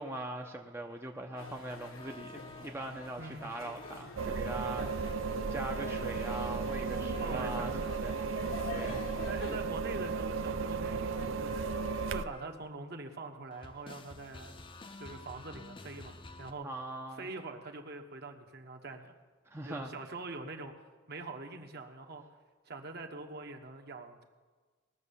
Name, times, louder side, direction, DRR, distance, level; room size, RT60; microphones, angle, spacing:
voice 1, 0.0-5.1 5.5-8.4 8.7-9.1 16.6-17.3 19.5-19.9, right 2 dB, 10° right, 2 dB, 0.6 m, -41 dB
sound 1, 1.3-6.5 6.9-13.2 13.5-16.5, left 3 dB, 25° left, 0.6 m, -51 dB
sound 2, 1.4-9.6, left 3 dB, 80° left, 1.4 m, -46 dB
voice 2, 3.2-3.5 4.8-4.9 7.1-7.8 8.8-9.0 9.3-11.6 12.1-14.6 15.0-16.7 17.2-19.1 19.6-20.7 21.1-22.2 22.7-24.2, right 3 dB, 50° right, 4 dB, 1.1 m, -44 dB
sound 3, 4.2-12.2, right 5 dB, 65° right, 0.5 m, -35 dB
19.5 x 6.6 x 7.0 m, 1.4 s
head